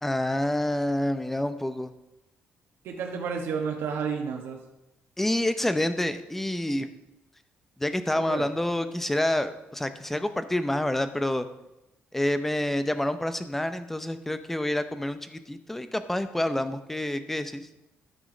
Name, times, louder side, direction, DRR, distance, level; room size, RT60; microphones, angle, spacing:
voice 1, 0.0-1.9 5.2-6.9 7.8-11.5 12.1-17.6, left 1 dB, 5° left, 10 dB, 0.6 m, -28 dB
voice 2, 2.8-4.6 8.1-8.5, right 6 dB, 85° right, 1 dB, 1.2 m, -31 dB
12.5 x 6.2 x 5.0 m, 0.94 s
cardioid pair, 145°, 4 cm